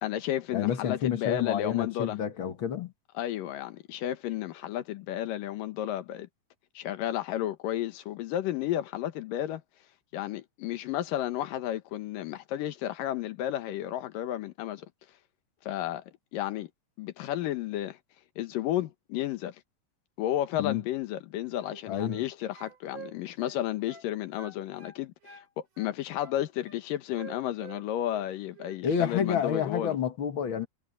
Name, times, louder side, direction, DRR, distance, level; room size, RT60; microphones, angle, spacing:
voice 1, 0.0-2.2 3.1-6.3 6.8-9.6 10.1-14.9 15.7-16.0 16.3-16.7 17.0-18.0 18.4-19.6 20.2-30.0, left 12 dB, 80° left, 2.9 m, -32 dB
voice 2, 0.5-2.9 20.6-20.8 21.9-22.2 28.8-30.7, left 8 dB, 50° left, 1.7 m, -29 dB
sound 1, 21.6-22.3 22.5-24.1 24.4-25.5 25.8-26.8 27.2-28.3 28.5-28.8, right 6 dB, 45° right, 5.5 m, -48 dB
omnidirectional pair, 3.9 m